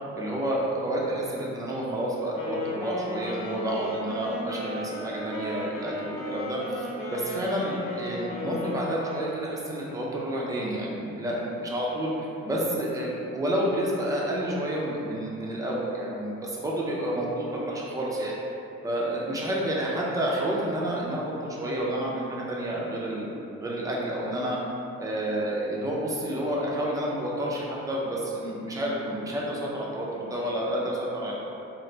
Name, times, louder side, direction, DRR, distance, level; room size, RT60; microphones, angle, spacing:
voice 1, 0.1-12.1 12.4-18.4 18.8-23.3 23.6-24.6 25.0-31.3, right 1 dB, 10° right, -4 dB, 0.4 m, -29 dB
Wind instrument woodwind instrument, 2.3-9.5, left 2 dB, 45° left, 0.6 m, -35 dB
3.2 x 2.4 x 3.8 m, 2.8 s
cardioid pair, 155°, 29 cm